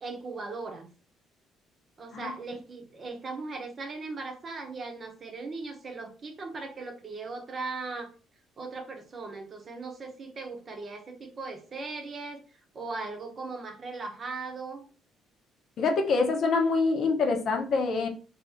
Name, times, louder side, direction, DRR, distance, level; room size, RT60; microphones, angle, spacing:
voice 1, 0.0-0.9 2.0-8.1 8.6-14.9, right 3 dB, 40° right, 4 dB, 0.8 m, -38 dB
voice 2, 15.8-18.1, left 4 dB, 55° left, 3 dB, 0.7 m, -25 dB
2.8 x 2.6 x 3.5 m, 0.37 s
cardioid pair, 90°, 0 cm